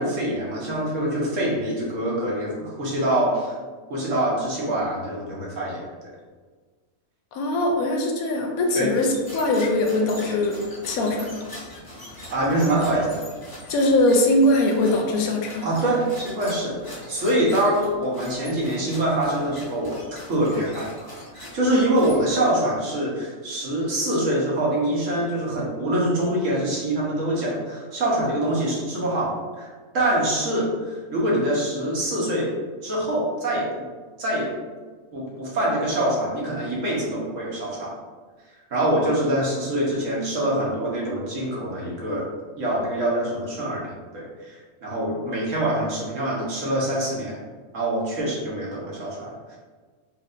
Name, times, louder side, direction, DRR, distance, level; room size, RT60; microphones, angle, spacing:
voice 1, 0.0-3.5 3.9-5.9 8.7-8.9 12.3-13.2 15.6-20.0 20.3-20.9 21.3-29.7 29.9-32.5 32.8-33.7 34.2-34.5 35.1-37.9 38.7-42.3 42.6-43.9 44.1-47.4 47.7-49.6, right 1 dB, 60° right, -4 dB, 1.3 m, -24 dB
voice 2, 7.3-11.3 13.7-15.7, left 1 dB, 75° left, 1 dB, 1.0 m, -21 dB
sound 1, 8.6-22.6, left 1 dB, 25° left, 0.5 m, -42 dB
4.3 x 2.8 x 2.5 m, 1.4 s
omnidirectional pair, 1.5 m